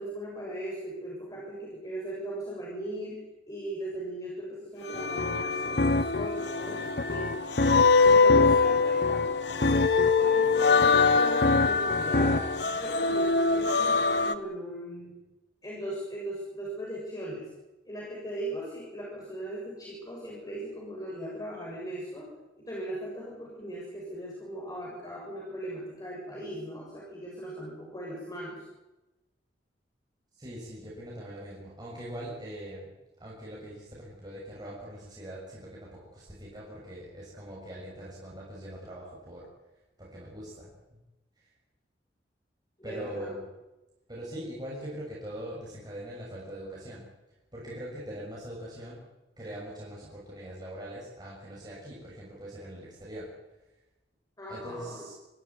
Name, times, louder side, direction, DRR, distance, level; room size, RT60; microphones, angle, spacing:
voice 1, 0.0-7.3 8.1-9.2 10.2-12.5 12.8-15.1 15.6-17.5 17.9-22.3 22.6-28.6 42.8-43.3 54.4-55.1, right 1 dB, 20° left, -4 dB, 7.1 m, -38 dB
sound 1, 4.9-14.3, left 4 dB, 75° left, 1.5 m, -24 dB
sound 2, 4.9-12.6, left 2 dB, 60° left, 0.8 m, -29 dB
voice 2, 30.4-32.9 33.2-39.5 40.0-41.0 42.8-43.5 44.1-47.1 47.5-49.0 49.4-53.3 54.5-55.1, right 1 dB, 25° right, -6 dB, 7.0 m, -42 dB
25.5 x 16.0 x 9.7 m, 1.0 s
head